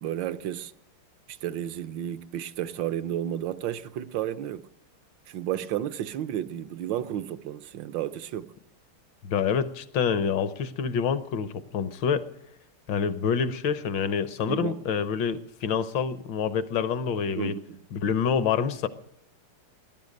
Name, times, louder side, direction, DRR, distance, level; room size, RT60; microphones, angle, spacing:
voice 1, 0.0-0.7 1.3-4.7 5.3-8.5 14.5-14.8 17.3-17.8, right 11 dB, 70° right, 1.3 m, -32 dB
voice 2, 9.2-12.3 12.9-17.5 17.9-18.9, left 7 dB, 65° left, 1.5 m, -27 dB
18.5 x 11.0 x 6.5 m
omnidirectional pair, 2.4 m